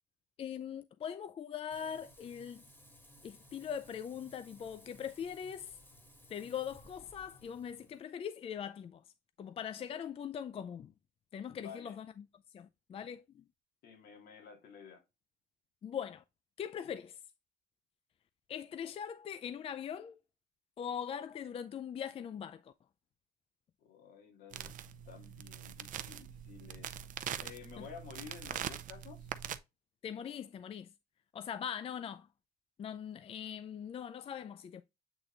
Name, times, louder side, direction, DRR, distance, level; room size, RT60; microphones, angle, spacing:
voice 1, 0.4-2.6 3.2-5.8 6.3-9.0 9.4-10.9 11.3-12.3 12.5-13.4 15.8-16.2 16.6-17.2 18.5-20.2 20.8-22.7 27.8-27.9 30.0-30.9 31.3-32.3 32.8-34.8, left 8 dB, 35° left, 0.4 m, -41 dB
Frying (food), 1.7-8.0, equal, 10° left, 2.4 m, -59 dB
voice 2, 11.6-12.0 13.8-15.0 23.8-24.7 25.1-26.9 27.4-29.3, left 7 dB, 70° left, 2.2 m, -52 dB
sound 1, 24.5-29.6, right 10 dB, 50° right, 0.6 m, -43 dB
8.0 x 3.7 x 3.2 m
cardioid pair, 110°, 17 cm